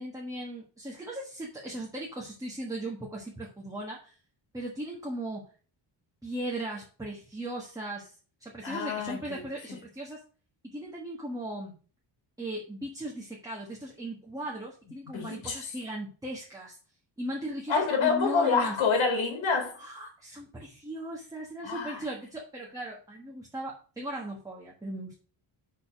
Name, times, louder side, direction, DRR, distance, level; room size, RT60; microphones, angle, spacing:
voice 1, 0.0-4.1 4.5-5.4 6.2-8.1 8.4-10.2 10.6-11.8 12.4-16.8 17.2-18.7 19.8-25.1, right 1 dB, 5° right, 1.4 m, -37 dB
voice 2, 8.6-9.4 9.7-9.8 15.1-15.6 17.7-19.8 21.6-22.0, left 5 dB, 80° left, 3.3 m, -27 dB
6.7 x 4.0 x 5.9 m
wide cardioid pair, 160°, 46 cm